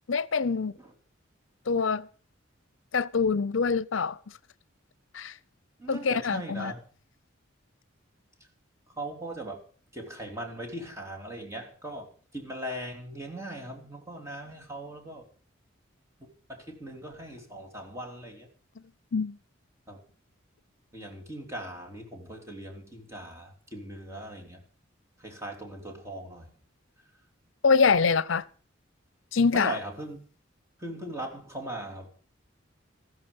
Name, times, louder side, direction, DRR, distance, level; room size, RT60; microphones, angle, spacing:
voice 1, 0.1-0.7 1.7-2.1 2.9-4.2 5.1-5.3 5.9-6.7 19.1-19.4 27.6-28.4 29.3-29.8, left 5 dB, 70° left, 0.6 m, -25 dB
voice 2, 5.8-6.8 8.9-9.6 9.9-15.3 16.2-18.5 19.9-20.0 20.9-24.6 25.2-26.5 29.5-30.2 30.8-32.2, right 1 dB, 15° right, 3.4 m, -39 dB
15.0 x 13.5 x 5.4 m
head